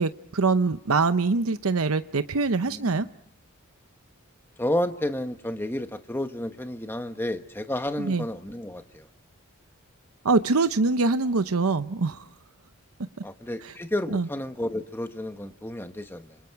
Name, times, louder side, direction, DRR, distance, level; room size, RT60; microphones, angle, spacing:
voice 1, 0.0-3.1 8.0-8.2 10.2-12.3 13.6-13.7 14.1-14.3, right 3 dB, 90° right, 11 dB, 0.8 m, -24 dB
voice 2, 2.6-3.1 4.6-9.1 13.2-16.4, left 1 dB, 10° left, 8 dB, 1.2 m, -31 dB
27.0 x 26.5 x 4.7 m, 0.70 s
head